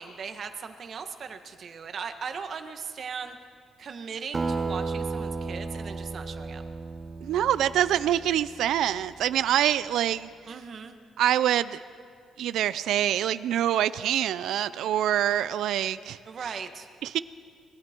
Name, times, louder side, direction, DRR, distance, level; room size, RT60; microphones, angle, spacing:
voice 1, 0.0-3.3 3.8-6.6 10.5-11.0 16.2-16.9, right 6 dB, 50° right, 7 dB, 1.6 m, -38 dB
Acoustic guitar, 4.3-9.2, right 3 dB, 25° right, 1.2 m, -34 dB
voice 2, 7.2-10.3 11.2-11.8 12.4-16.2 17.0-17.2, right 11 dB, 80° right, 16 dB, 0.5 m, -25 dB
27.0 x 21.5 x 4.6 m, 2.1 s
cardioid pair, 115°, 0 cm